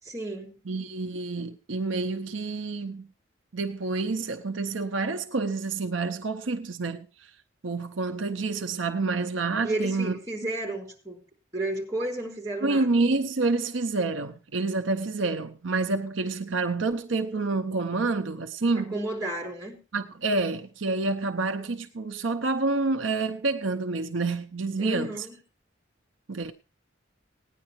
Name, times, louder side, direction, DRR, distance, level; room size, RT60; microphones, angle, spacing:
voice 1, 0.0-0.6 9.6-11.2 11.5-12.9 18.8-19.8 24.8-25.3, right 1 dB, 15° right, 3.5 m, -32 dB
voice 2, 0.7-3.1 3.5-7.3 7.6-10.2 12.6-18.9 19.9-25.3 26.3-26.5, right 3 dB, 75° right, 0.8 m, -28 dB
18.0 x 9.9 x 3.1 m
head